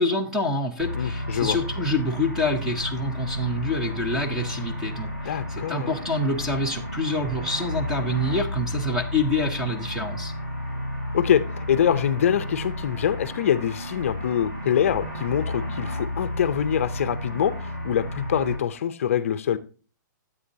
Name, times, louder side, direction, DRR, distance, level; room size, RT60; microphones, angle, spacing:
voice 1, 0.0-10.3, left 2 dB, 5° right, 3 dB, 0.5 m, -27 dB
sound 1, 0.8-18.6, left 1 dB, 35° right, 3.0 m, -32 dB
voice 2, 0.9-1.6 5.2-5.9 11.1-19.6, left 9 dB, 45° left, 13 dB, 0.5 m, -24 dB
9.8 x 8.1 x 2.7 m, 0.38 s
hypercardioid pair, 175°, 10 cm